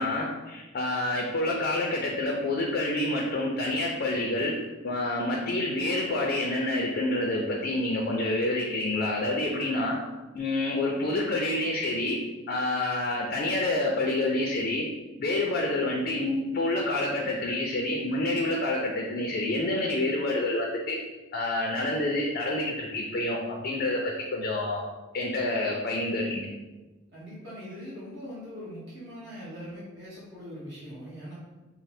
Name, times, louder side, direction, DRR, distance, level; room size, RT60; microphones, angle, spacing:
voice 1, 0.0-4.5 4.8-10.0 10.3-12.2 12.5-14.8 15.2-21.0 21.3-24.8 25.1-26.5, left 2 dB, 50° left, -1 dB, 0.4 m, -28 dB
voice 2, 27.1-31.3, equal, 60° right, -10 dB, 1.3 m, -41 dB
3.1 x 2.0 x 4.1 m, 1.2 s
head